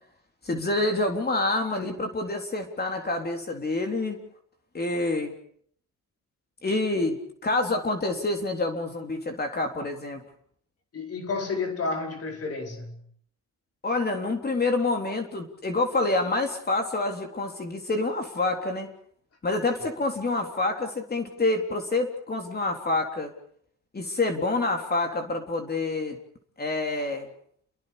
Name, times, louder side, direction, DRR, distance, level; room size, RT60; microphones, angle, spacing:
voice 1, 0.4-4.2 4.7-5.3 6.6-7.2 7.4-10.2 13.8-18.9 19.4-23.3 23.9-26.2 26.6-27.3, left 2 dB, 30° left, 3.6 m, -27 dB
voice 2, 10.9-13.0, left 4 dB, 50° left, 4.8 m, -31 dB
30.0 x 22.5 x 5.2 m
cardioid pair, 90°, 30 cm